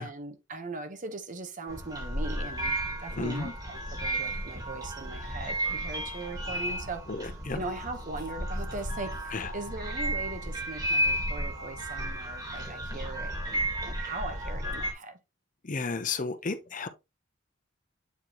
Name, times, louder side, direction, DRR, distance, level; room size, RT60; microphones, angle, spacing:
voice 1, 0.0-7.1 7.5-15.2, right 2 dB, 40° right, 1.1 m, -40 dB
sound 1, 1.7-14.9, right 1 dB, 20° right, 1.8 m, -33 dB
voice 2, 3.2-3.5 7.1-7.6 9.3-9.5 15.6-16.9, left 4 dB, 45° left, 0.7 m, -33 dB
8.2 x 4.4 x 2.9 m
head